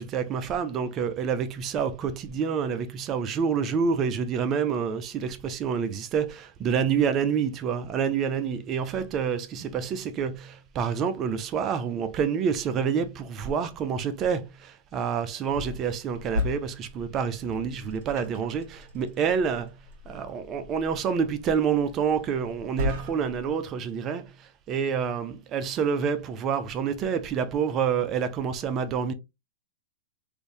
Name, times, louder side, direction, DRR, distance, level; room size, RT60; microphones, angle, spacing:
voice 1, 0.0-19.8 20.1-29.1, right 7 dB, 30° right, 0.5 m, -28 dB
sound 1, 15.5-23.5, left 2 dB, 50° right, 1.7 m, -37 dB
3.3 x 2.6 x 3.0 m
hypercardioid pair, 135°, 0 cm